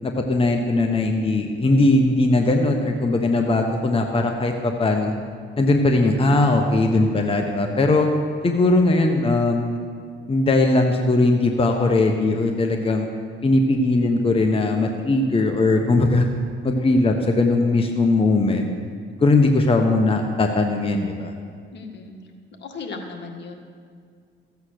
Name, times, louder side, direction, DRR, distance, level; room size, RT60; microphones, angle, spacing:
voice 1, 0.0-5.1 5.6-8.1 8.4-9.8 10.3-13.1 13.4-16.3 16.6-18.7 19.2-21.3, left 2 dB, 30° left, 3 dB, 1.1 m, -19 dB
voice 2, 21.7-22.1 22.6-23.5, left 4 dB, 60° left, 3 dB, 1.7 m, -36 dB
14.5 x 8.2 x 6.6 m, 2.1 s
cardioid pair, 90°, 20 cm